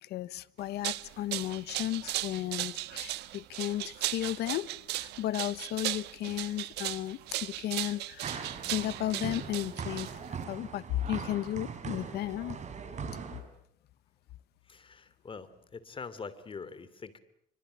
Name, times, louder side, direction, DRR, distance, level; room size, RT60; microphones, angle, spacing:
voice 1, 0.0-4.7 5.0-10.1 10.5-12.6, left 13 dB, 75° left, 1.1 m, -34 dB
sound 1, 0.6-10.4, right 17 dB, 85° right, 1.3 m, -37 dB
sound 2, 8.2-13.4, right 6 dB, 45° right, 5.5 m, -40 dB
voice 2, 14.6-17.2, left 5 dB, 30° left, 3.1 m, -44 dB
28.5 x 25.5 x 8.2 m
cardioid pair, 110°, 17 cm